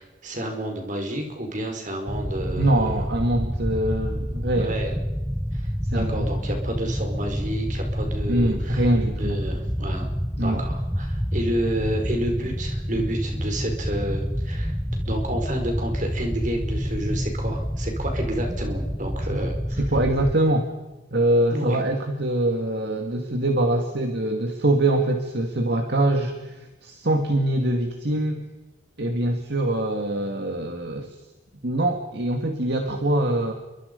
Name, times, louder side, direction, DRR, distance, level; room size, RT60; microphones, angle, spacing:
voice 1, 0.0-3.0 4.6-5.0 5.5-8.9 9.2-10.1 10.4-14.7 15.0-19.8 21.5-21.8, right 1 dB, 40° right, 3 dB, 5.1 m, -30 dB
sound 1, 2.1-20.3, equal, ahead, 0.9 m, -28 dB
voice 2, 2.6-4.8 5.8-6.3 8.3-9.4 10.4-10.6 19.3-19.4 19.8-20.7 21.1-28.4 29.0-31.1 31.6-33.5, right 1 dB, 55° right, 3 dB, 2.3 m, -23 dB
29.0 x 24.0 x 5.5 m, 1.1 s
head